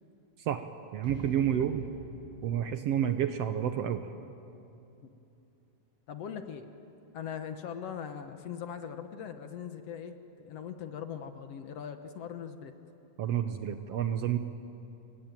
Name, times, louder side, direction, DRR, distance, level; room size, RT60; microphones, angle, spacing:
voice 1, 0.9-1.9 2.4-4.1 13.2-14.4, right 10 dB, 65° right, 9 dB, 1.7 m, -29 dB
sound 1, 1.0-4.2, equal, 5° right, 5.8 m, -47 dB
voice 2, 6.1-6.7 7.1-12.7, left 8 dB, 65° left, 8 dB, 1.9 m, -40 dB
27.5 x 23.5 x 9.1 m, 2.8 s
omnidirectional pair, 3.5 m